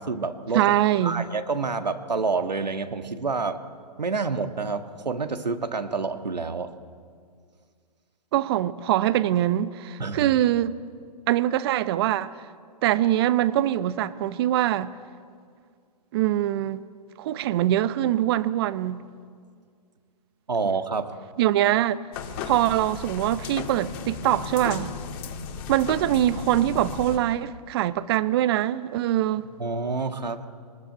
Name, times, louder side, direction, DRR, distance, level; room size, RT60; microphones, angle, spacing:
voice 1, 0.0-0.7 1.0-3.6 4.0-6.7 10.0-10.3 20.5-21.1 29.6-30.4, right 4 dB, 90° right, 1.6 m, -28 dB
voice 2, 0.5-1.3 8.3-10.8 11.3-12.3 12.8-14.9 16.1-16.8 17.2-19.0 21.4-22.0 22.4-24.9 25.7-29.5, right 13 dB, 40° right, 0.9 m, -23 dB
sound 1, 22.1-27.2, left 6 dB, 35° left, 2.4 m, -35 dB
22.5 x 19.0 x 9.0 m
hypercardioid pair, 135°, 21 cm